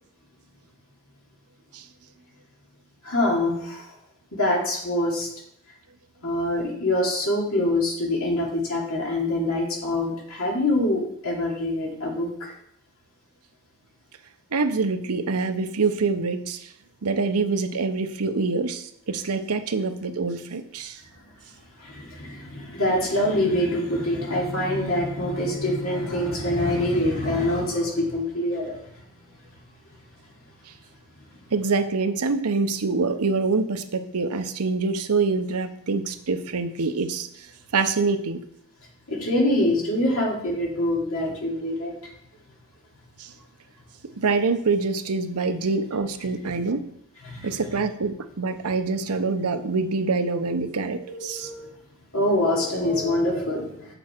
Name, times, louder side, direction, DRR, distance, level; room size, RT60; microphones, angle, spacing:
voice 1, 3.0-3.8 4.3-5.3 6.2-12.5 21.8-28.8 39.1-41.9 47.2-47.5 50.9-51.7 52.1-53.9, left 1 dB, 65° left, -3 dB, 2.6 m, -25 dB
voice 2, 14.5-16.7 17.0-21.0 30.7-30.8 31.5-38.4 43.2-43.3 44.2-46.9 47.4-51.5, right 4 dB, 90° right, 9 dB, 0.8 m, -25 dB
7.2 x 7.0 x 4.5 m, 0.74 s
head